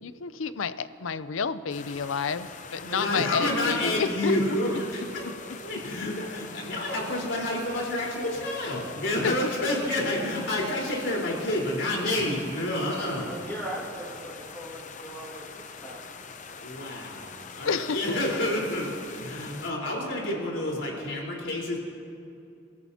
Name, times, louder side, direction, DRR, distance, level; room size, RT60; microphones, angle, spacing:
voice 1, 0.0-4.6 9.2-9.3 17.6-18.0, left 5 dB, 85° left, 13 dB, 0.6 m, -30 dB
sound 1, 1.7-19.7, left 5 dB, 40° left, 0.7 m, -43 dB
voice 2, 2.8-5.3 5.6-13.5 16.6-21.8, left 1 dB, 65° left, -3 dB, 4.1 m, -29 dB
voice 3, 13.3-16.0, right 1 dB, 15° left, -6 dB, 2.1 m, -39 dB
29.5 x 14.5 x 2.8 m, 2.6 s
head